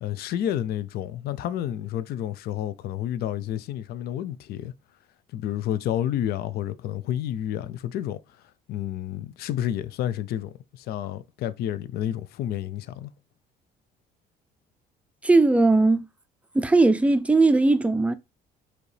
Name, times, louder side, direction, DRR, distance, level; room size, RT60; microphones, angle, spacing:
voice 1, 0.0-4.7 5.3-8.2 8.7-13.1, left 11 dB, 70° left, 0.5 m, -30 dB
voice 2, 15.2-16.0 16.5-18.1, right 3 dB, 10° right, 0.4 m, -19 dB
5.0 x 2.9 x 3.2 m
cardioid pair, 110°, 17 cm